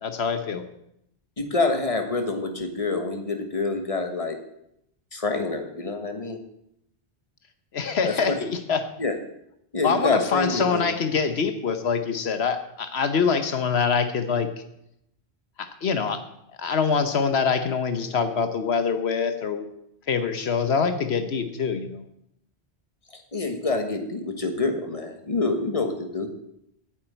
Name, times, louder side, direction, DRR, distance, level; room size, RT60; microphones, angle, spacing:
voice 1, 0.0-0.6 7.7-8.9 9.8-14.5 15.6-16.2 16.6-19.7 20.1-22.0, left 5 dB, 75° left, 9 dB, 1.2 m, -24 dB
voice 2, 1.4-4.4 5.1-6.4 8.0-8.4 9.0-9.1 9.7-10.8 23.3-26.3, left 3 dB, 35° left, 5 dB, 1.5 m, -26 dB
9.3 x 7.4 x 8.9 m, 0.79 s
omnidirectional pair, 1.1 m